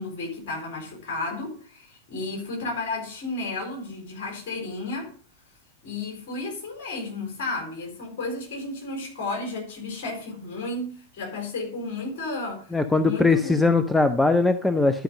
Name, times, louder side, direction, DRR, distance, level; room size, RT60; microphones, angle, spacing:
voice 1, 0.0-5.1 5.8-12.7 13.0-13.7, left 2 dB, 50° left, 4.2 m, -33 dB
voice 2, 12.7-15.0, left 3 dB, 5° left, 0.6 m, -20 dB
11.5 x 5.2 x 5.2 m
figure-of-eight pair, 90°, 0 cm